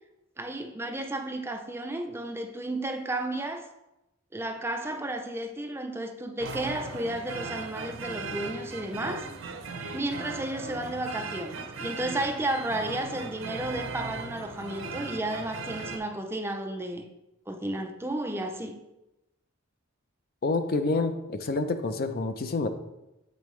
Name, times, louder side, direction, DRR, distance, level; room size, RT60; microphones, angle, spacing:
voice 1, 0.4-3.7 4.3-9.3 9.9-17.1 17.5-18.8, right 1 dB, 10° right, 0.4 m, -33 dB
sound 1, 6.4-16.0, right 3 dB, 65° right, 0.7 m, -38 dB
voice 2, 20.4-22.7, left 3 dB, 45° left, 0.5 m, -28 dB
7.5 x 5.2 x 3.1 m
head